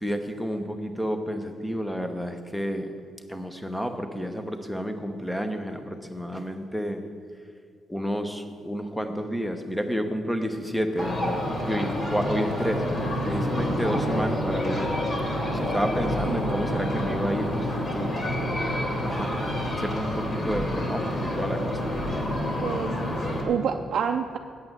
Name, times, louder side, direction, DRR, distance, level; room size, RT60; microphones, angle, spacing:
voice 1, 0.0-2.9 3.3-7.0 7.9-11.4 11.7-12.8 13.2-14.9 15.5-18.1 19.0-19.4 19.8-21.8, equal, ahead, 6 dB, 1.0 m, -30 dB
sound 1, 11.0-23.4, equal, 35° left, 2.9 m, -28 dB
voice 2, 15.7-16.6 22.6-24.4, right 7 dB, 60° right, 3 dB, 0.5 m, -30 dB
8.6 x 7.2 x 7.9 m, 2.3 s
cardioid pair, 90°, 0 cm